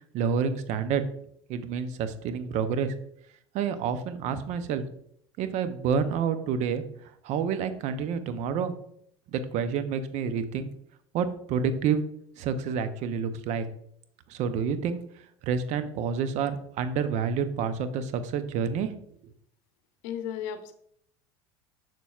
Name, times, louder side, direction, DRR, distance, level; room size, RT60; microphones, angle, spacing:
voice 1, 0.1-1.0 1.5-2.9 3.5-4.8 5.4-6.8 7.2-8.7 9.3-10.7 11.1-12.0 12.4-13.7 14.3-15.0 15.4-18.9, right 6 dB, 55° right, 11 dB, 0.6 m, -28 dB
voice 2, 20.0-20.7, left 9 dB, 65° left, 9 dB, 0.7 m, -34 dB
6.8 x 6.1 x 2.4 m, 0.69 s
hypercardioid pair, 75°, 14 cm